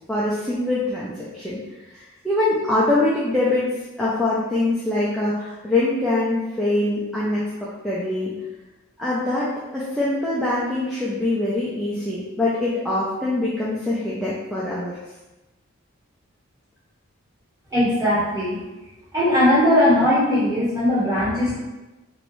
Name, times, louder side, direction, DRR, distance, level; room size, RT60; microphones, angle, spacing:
voice 1, 0.1-1.6 1.9-3.7 4.0-7.4 7.8-8.3 9.0-14.9, left 2 dB, ahead, -8 dB, 0.3 m, -23 dB
voice 2, 17.7-18.6 19.1-21.6, left 1 dB, 15° right, -12 dB, 1.4 m, -19 dB
3.1 x 2.6 x 3.1 m, 1.1 s
head